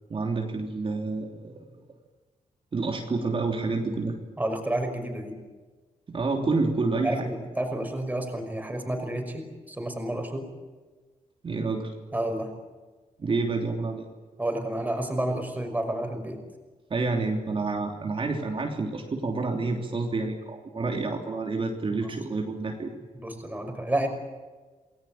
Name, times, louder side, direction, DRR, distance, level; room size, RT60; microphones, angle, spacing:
voice 1, 0.1-1.5 2.7-4.1 6.1-7.3 11.4-11.9 13.2-14.1 16.9-22.9, right 3 dB, 40° right, 1 dB, 3.2 m, -28 dB
voice 2, 4.4-5.3 7.0-10.5 12.1-12.5 14.4-16.4 21.9-22.1 23.1-24.1, right 1 dB, 10° right, 4 dB, 5.7 m, -30 dB
28.5 x 20.5 x 9.0 m, 1.3 s
wide cardioid pair, 150°, 14 cm